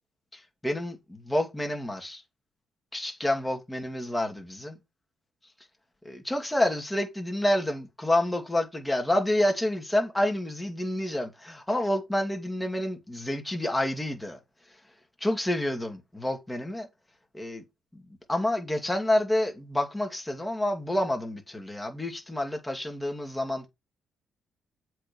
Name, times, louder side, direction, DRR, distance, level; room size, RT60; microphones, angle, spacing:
voice 1, 0.3-2.2 2.9-4.8 6.0-14.4 15.2-16.9 17.3-17.6 17.9-18.0 18.3-23.7, left 1 dB, 10° left, 2.4 m, -28 dB
7.6 x 4.8 x 5.4 m
cardioid pair, 85°, 0 cm